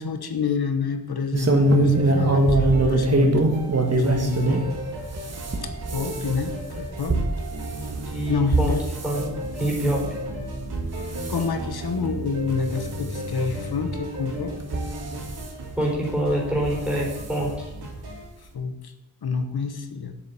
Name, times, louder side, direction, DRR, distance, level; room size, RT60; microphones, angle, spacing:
voice 1, 0.0-3.6 3.9-4.6 5.6-7.2 8.3-8.9 11.3-14.6 18.5-18.9 19.2-20.1, left 5 dB, 75° left, 7 dB, 1.1 m, -28 dB
sound 1, 1.3-4.7 5.1-9.2 9.6-10.0 10.5-10.9 11.1-11.4 12.1-12.2 12.5-12.6 13.7-13.8 14.6-15.4 16.6-16.8 17.1-17.2 17.5-17.6, right 2 dB, 40° right, 1.4 m, -22 dB
sound 2, 1.6-15.2, equal, 65° right, 4.0 m, -35 dB
sound 3, 4.0-18.2, right 2 dB, 80° right, 2.8 m, -39 dB
voice 2, 8.1-8.8 9.0-10.0 15.8-17.7, right 1 dB, 5° right, -2 dB, 4.0 m, -25 dB
7.8 x 6.7 x 8.3 m, 0.97 s
wide cardioid pair, 130°, 38 cm